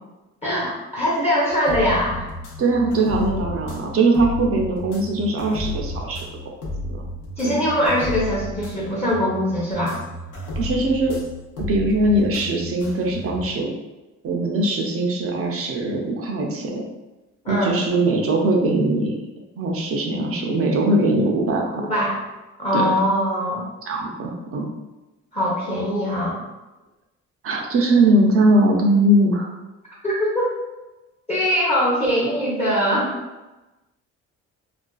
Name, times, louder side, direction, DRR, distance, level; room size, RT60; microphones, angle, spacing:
voice 1, 0.4-2.3 7.4-10.0 17.4-17.8 21.8-22.2 22.6-23.7 25.3-26.4 30.0-30.5 31.3-33.1, equal, 20° left, -6 dB, 0.7 m, -22 dB
sound 1, 1.5-13.5, left 1 dB, 80° left, 0.8 m, -33 dB
voice 2, 2.6-6.2 6.9-7.0 7.4-7.5 10.6-11.2 11.7-13.7 14.2-16.8 17.5-19.2 19.6-21.8 22.7-23.0 23.9-24.7 27.4-29.5, right 1 dB, 50° right, 0 dB, 0.5 m, -20 dB
2.4 x 2.3 x 2.2 m, 1.1 s
cardioid pair, 90°, 30 cm